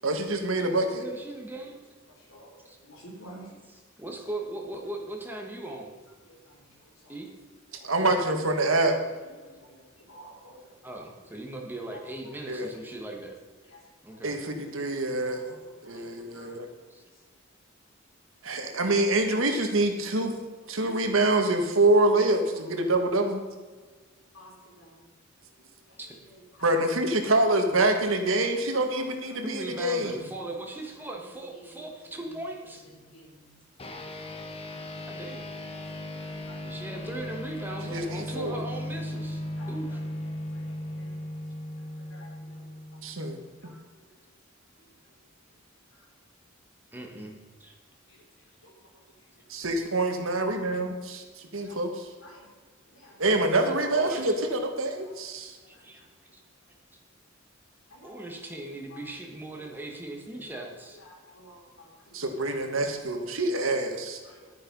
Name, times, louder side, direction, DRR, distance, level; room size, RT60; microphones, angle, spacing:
voice 1, 0.0-1.0 7.8-9.0 12.5-12.7 14.2-15.4 15.8-16.7 18.4-20.3 20.7-23.4 26.6-30.1 37.8-38.5 43.0-43.4 49.5-51.2 51.5-51.9 53.2-55.5 62.1-64.2, right 2 dB, 75° right, 5 dB, 1.7 m, -26 dB
voice 2, 1.0-1.8 2.6-2.8 4.0-5.9 7.1-7.3 10.8-13.4 14.0-14.4 16.9-17.0 26.0-26.2 29.4-32.8 35.1-35.5 36.6-39.4 39.7-40.0 46.9-47.7 53.5-54.3 55.7-56.0 56.3-56.4 58.0-61.0, right 2 dB, 10° right, 1 dB, 1.6 m, -38 dB
voice 3, 2.1-3.5 6.2-7.2 7.7-8.4 9.2-10.9 11.4-11.6 11.9-13.0 13.7-14.3 14.8-16.6 17.1-17.2 20.6-21.5 22.1-22.6 23.0-23.2 24.3-25.0 25.9-26.7 28.6-29.5 29.7-30.0 30.3-30.5 31.0-31.1 31.3-33.4 35.7-36.9 39.6-41.2 41.8-43.8 44.3-44.4 44.8-44.9 45.5-45.6 45.9-46.1 48.1-49.3 49.6-49.7 51.6-51.8 52.2-52.5 52.9-53.4 53.8-54.2 55.0-55.1 55.6-56.4 57.9-58.3 58.9-59.0 59.5-59.6 60.3-62.2 64.2-64.5, equal, 75° left, -1 dB, 3.7 m, -53 dB
sound 1, 33.8-43.5, left 1 dB, 30° left, 1.2 m, -37 dB
11.0 x 9.6 x 5.4 m, 1.3 s
head